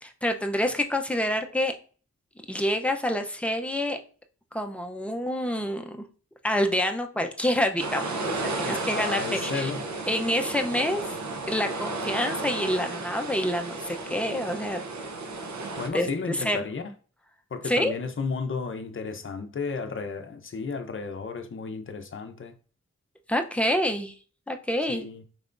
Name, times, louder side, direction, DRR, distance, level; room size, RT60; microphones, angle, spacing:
voice 1, 0.0-1.7 2.5-4.0 4.5-6.0 6.4-9.7 10.1-11.2 11.5-14.8 15.9-16.6 17.6-17.9 23.3-24.1 24.5-25.1, left 1 dB, 5° left, 0.5 m, -27 dB
sound 1, 7.8-15.9, right 3 dB, 75° right, 0.7 m, -33 dB
voice 2, 8.6-9.8 15.8-16.9 17.5-22.6 24.9-25.2, left 4 dB, 45° left, 0.6 m, -33 dB
4.7 x 3.3 x 2.5 m
wide cardioid pair, 70°, 29 cm